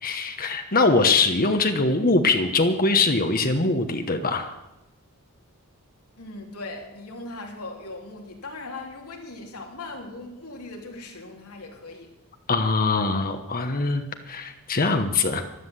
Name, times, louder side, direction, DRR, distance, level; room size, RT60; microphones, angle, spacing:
voice 1, 0.0-4.5 12.5-15.4, left 3 dB, 40° left, 7 dB, 1.1 m, -22 dB
voice 2, 6.2-12.1, left 2 dB, 85° left, 1 dB, 3.2 m, -39 dB
13.0 x 12.0 x 8.0 m, 0.94 s
head